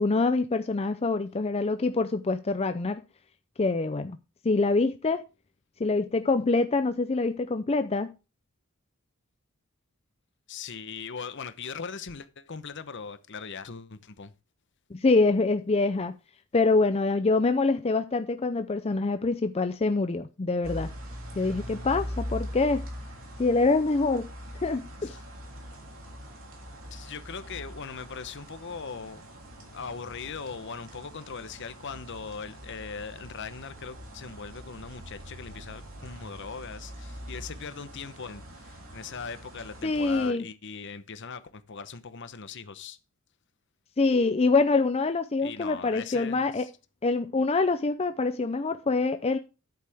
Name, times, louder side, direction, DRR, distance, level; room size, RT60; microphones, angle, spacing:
voice 1, 0.0-3.0 3.6-4.2 4.4-5.2 5.8-8.1 14.9-16.2 16.5-20.9 21.4-22.9 23.4-24.3 24.6-25.1 39.8-40.5 44.0-46.7 47.0-49.4, left 3 dB, 30° left, 0.5 m, -25 dB
voice 2, 10.5-14.3 25.0-25.2 26.8-29.2 29.7-43.0 45.4-46.7, left 5 dB, 60° left, 0.9 m, -40 dB
sound 1, 20.6-40.3, equal, 70° right, 3.1 m, -42 dB
10.5 x 8.4 x 3.5 m
head